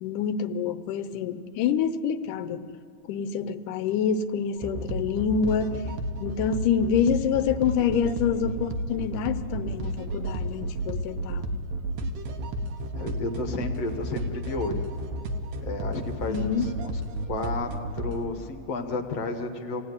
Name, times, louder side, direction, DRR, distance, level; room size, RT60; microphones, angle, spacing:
voice 1, 0.0-2.7 3.1-5.8 6.2-11.5 16.3-16.7, left 7 dB, 85° left, 11 dB, 2.4 m, -27 dB
sound 1, 4.6-18.2, right 1 dB, 85° right, 3.0 m, -32 dB
voice 2, 12.9-14.9 15.6-17.0 17.3-19.8, left 3 dB, 60° left, 4 dB, 2.2 m, -32 dB
26.5 x 17.0 x 9.6 m, 2.6 s
omnidirectional pair, 3.6 m